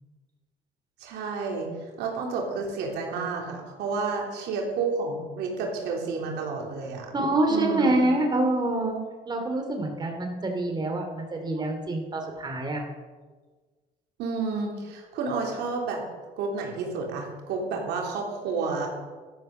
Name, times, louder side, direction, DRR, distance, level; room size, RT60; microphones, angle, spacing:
voice 1, 1.0-1.7 2.0-7.1 7.5-8.0 14.2-16.0 16.4-18.9, right 4 dB, 85° right, 0 dB, 3.5 m, -30 dB
voice 2, 7.1-12.8, right 2 dB, 25° right, 3 dB, 2.6 m, -26 dB
12.5 x 12.0 x 6.5 m, 1.4 s
cardioid pair, 110°, 17 cm